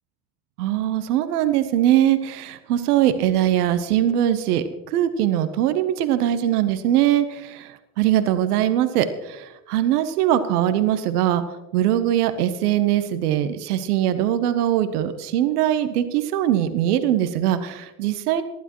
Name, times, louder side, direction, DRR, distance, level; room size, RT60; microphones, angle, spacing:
voice 1, 0.6-11.4 11.7-18.4, right 11 dB, 85° right, 11 dB, 0.9 m, -21 dB
19.5 x 12.0 x 3.0 m, 0.98 s
hypercardioid pair, 55°, 44 cm